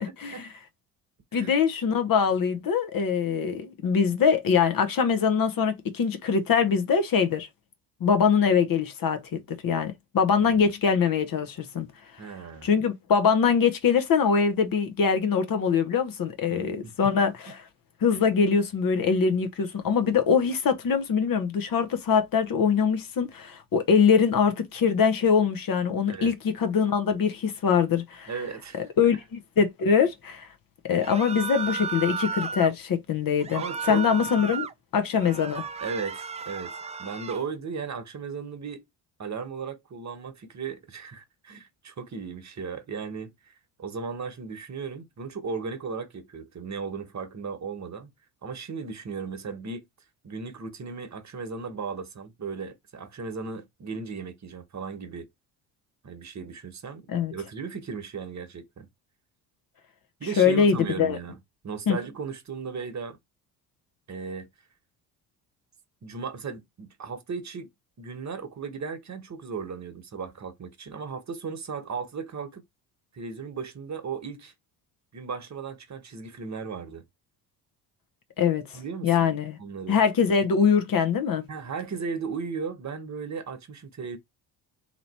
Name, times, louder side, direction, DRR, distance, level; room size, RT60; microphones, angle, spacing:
voice 1, 1.3-7.5 8.0-11.9 12.6-17.5 18.0-28.3 28.7-30.5 30.9-34.7 34.9-35.6 57.1-57.3 60.4-61.2 61.9-62.0 78.4-79.6 79.9-81.4, left 6 dB, 45° left, 1.0 m, -23 dB
voice 2, 12.2-12.7 16.5-16.9 26.1-26.3 28.3-29.2 33.5-34.0 35.8-36.7 37.0-38.8 39.2-43.5 43.8-48.1 48.4-49.8 50.2-55.3 56.0-57.0 57.3-58.9 60.2-61.4 61.6-63.2 64.1-64.5 66.0-67.7 68.0-72.6 73.1-74.5 75.1-77.0 78.7-79.3 79.6-80.0 81.5-84.2, right 5 dB, 35° right, 1.2 m, -36 dB
sound 1, 31.0-32.7 33.4-34.7 35.1-37.5, right 5 dB, 15° right, 0.4 m, -34 dB
3.0 x 2.9 x 4.2 m
hypercardioid pair, 60°, 47 cm